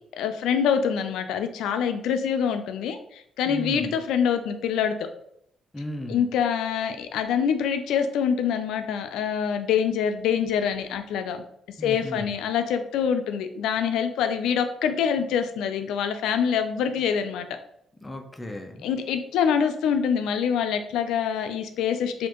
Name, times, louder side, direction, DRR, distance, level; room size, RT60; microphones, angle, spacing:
voice 1, 0.2-5.1 6.1-11.4 11.8-17.5 18.8-22.3, left 7 dB, 85° left, 8 dB, 0.3 m, -25 dB
voice 2, 3.4-4.0 5.7-6.3 11.8-12.4 18.0-18.9, equal, 15° left, 4 dB, 0.6 m, -35 dB
4.2 x 2.5 x 2.9 m, 0.71 s
cardioid pair, 90°, 0 cm